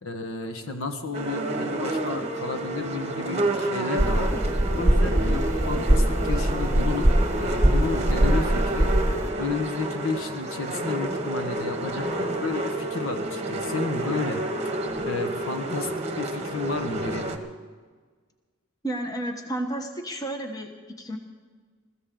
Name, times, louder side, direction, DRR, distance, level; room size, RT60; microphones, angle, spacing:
voice 1, 0.0-4.3 4.7-7.1 7.3-8.9 9.3-14.4 15.0-15.9 16.2-17.4, left 3 dB, 70° left, 6 dB, 1.4 m, -32 dB
sound 1, 1.1-17.4, right 1 dB, 30° right, 1.2 m, -29 dB
sound 2, 4.0-9.3, right 1 dB, 15° right, 1.0 m, -22 dB
voice 2, 18.8-21.2, right 1 dB, 15° left, 4 dB, 1.1 m, -32 dB
22.0 x 14.5 x 3.8 m, 1.5 s
head